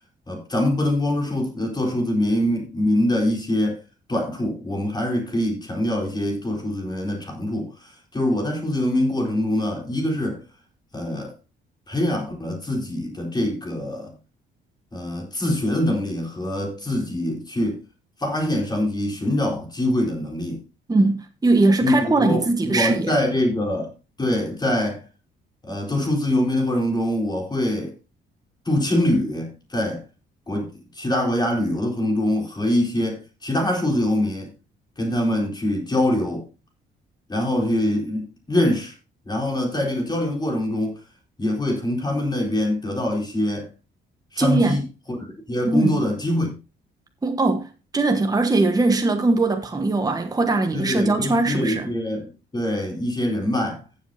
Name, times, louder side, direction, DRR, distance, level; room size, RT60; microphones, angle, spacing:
voice 1, 0.3-3.8 4.1-10.4 10.9-11.3 11.9-14.1 14.9-17.8 18.2-20.6 21.8-23.9 24.2-25.0 25.6-27.9 28.6-30.0 30.5-34.5 35.0-36.5 37.3-38.9 39.3-41.0 41.4-43.7 44.3-46.6 50.7-53.8, left 1 dB, 20° left, 4.4 m, -24 dB
voice 2, 20.9-23.1 44.4-44.8 45.7-45.9 47.2-51.9, right 2 dB, 20° right, 1.2 m, -20 dB
15.5 x 7.5 x 2.8 m
cardioid pair, 90°, 20 cm